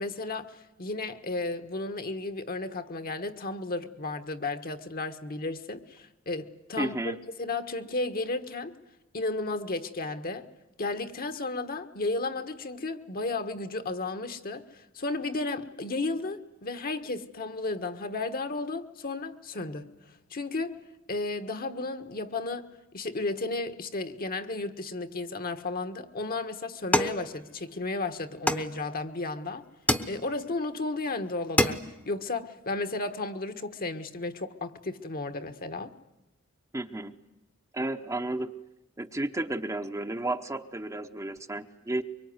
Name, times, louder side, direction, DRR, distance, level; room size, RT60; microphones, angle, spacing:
voice 1, 0.0-8.7 9.1-10.5 10.8-19.9 20.3-20.8 21.1-29.6 30.1-35.9, left 2 dB, 45° left, 1.4 m, -33 dB
voice 2, 6.8-7.2 36.7-37.1 37.7-38.5 39.0-42.0, right 2 dB, 15° right, 0.9 m, -32 dB
sound 1, 26.9-27.9 28.5-29.2 29.9-30.6 31.1-31.2 31.4-32.1, left 1 dB, 10° left, 1.0 m, -28 dB
24.0 x 23.5 x 9.6 m
head